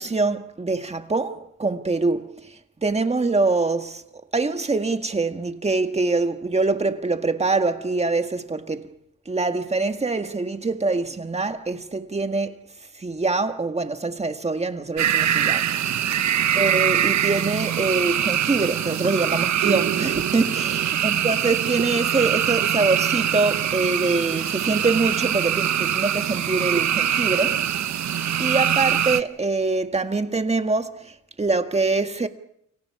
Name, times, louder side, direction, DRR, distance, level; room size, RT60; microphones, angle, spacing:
voice 1, 0.0-2.5 2.8-4.0 4.3-8.9 9.2-12.6 13.0-16.0 16.5-27.7 28.4-32.3, right 3 dB, 20° right, 1.7 m, -24 dB
sound 1, 15.0-29.2, right 10 dB, 60° right, 0.9 m, -23 dB
29.5 x 25.0 x 4.9 m
wide cardioid pair, 135°, 31 cm